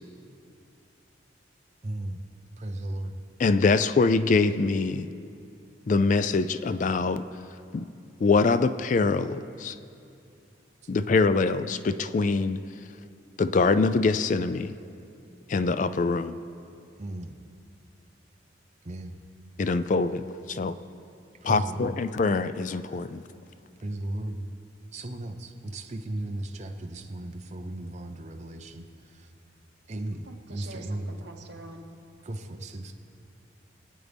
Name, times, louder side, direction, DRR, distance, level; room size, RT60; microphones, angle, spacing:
voice 1, 1.8-2.2 2.6-3.2 17.0-17.4 18.8-19.2 21.4-22.0 23.8-24.5 24.9-29.3 29.9-31.1 32.2-32.9, right 1 dB, 35° right, 4 dB, 0.6 m, -36 dB
voice 2, 3.4-5.1 5.9-7.2 7.7-7.9 8.2-9.8 10.9-12.6 13.4-14.7 15.5-16.4 19.6-20.8 21.4-23.2, left 4 dB, 40° left, 12 dB, 0.3 m, -24 dB
voice 3, 30.2-31.9, right 2 dB, 65° right, 2 dB, 1.3 m, -45 dB
23.0 x 8.6 x 3.5 m, 2.6 s
head